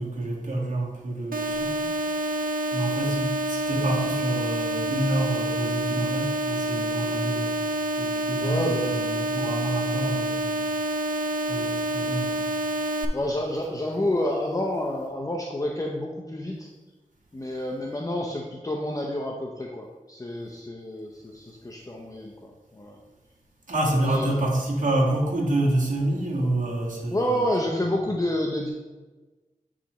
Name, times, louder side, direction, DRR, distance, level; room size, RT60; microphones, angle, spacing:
voice 1, 0.0-1.9 2.7-7.7 8.0-10.9 11.5-12.4 23.7-27.4, right 1 dB, 65° right, -4 dB, 1.7 m, -27 dB
sound 1, 1.3-13.1, right 1 dB, 80° right, 0.5 m, -28 dB
voice 2, 8.4-9.0 13.1-16.7 17.3-23.0 24.0-24.4 27.1-28.7, left 1 dB, 25° left, 0 dB, 0.7 m, -29 dB
8.1 x 4.9 x 3.0 m, 1.2 s
wide cardioid pair, 65°, 14 cm